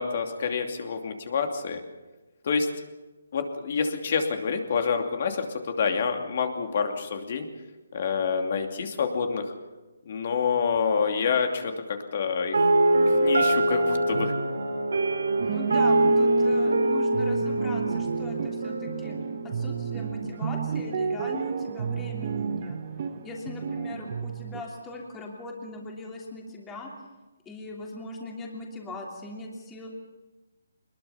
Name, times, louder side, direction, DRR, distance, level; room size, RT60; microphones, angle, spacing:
voice 1, 0.0-1.8 2.4-2.7 3.3-7.5 7.9-9.5 10.1-12.5 13.1-14.3, left 5 dB, 45° left, 5 dB, 2.7 m, -27 dB
sound 1, 12.5-20.5, right 1 dB, 85° right, 3.6 m, -24 dB
voice 2, 15.4-19.2 19.4-22.8 23.2-26.9 27.4-29.9, left 2 dB, 10° left, -1 dB, 3.1 m, -39 dB
sound 2, 15.4-24.6, right 7 dB, 40° right, 1.3 m, -32 dB
24.0 x 21.5 x 5.8 m, 1.1 s
hypercardioid pair, 170°, 0 cm